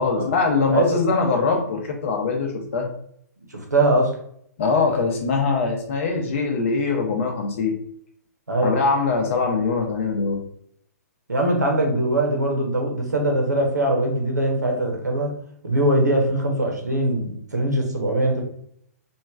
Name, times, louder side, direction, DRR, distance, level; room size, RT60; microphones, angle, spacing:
voice 1, 0.0-2.9 4.6-7.7 8.6-10.4, left 4 dB, 45° left, 2 dB, 0.7 m, -22 dB
voice 2, 3.5-4.1 8.5-8.8 11.3-15.3 15.6-18.4, right 1 dB, 80° right, 1 dB, 0.8 m, -21 dB
3.0 x 2.4 x 2.3 m, 0.67 s
figure-of-eight pair, 120°, 9 cm